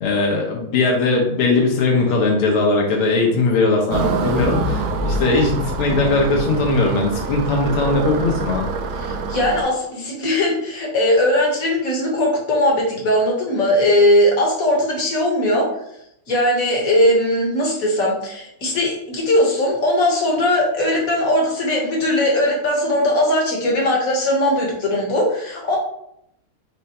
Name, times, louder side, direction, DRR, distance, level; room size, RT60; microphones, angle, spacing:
voice 1, 0.0-8.7, left 3 dB, 85° left, -1 dB, 1.9 m, -19 dB
sound 1, 3.9-9.6, right 3 dB, 80° right, 1.5 m, -25 dB
voice 2, 9.0-15.7 16.3-25.8, left 1 dB, 45° left, -1 dB, 1.3 m, -19 dB
5.2 x 2.2 x 4.2 m, 0.76 s
omnidirectional pair, 2.4 m